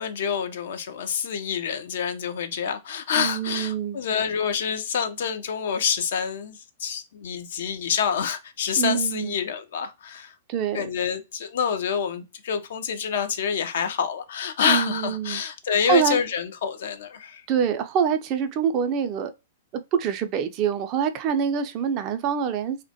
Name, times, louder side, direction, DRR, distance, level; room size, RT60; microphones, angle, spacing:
voice 1, 0.0-10.3 10.7-17.4, left 7 dB, 65° left, 0.4 m, -27 dB
voice 2, 3.2-4.0 8.8-9.4 10.5-10.9 14.6-15.4 15.9-16.2 17.5-19.3 19.9-22.8, right 7 dB, 40° right, 0.3 m, -25 dB
2.1 x 2.1 x 2.7 m
hypercardioid pair, 110°, 0 cm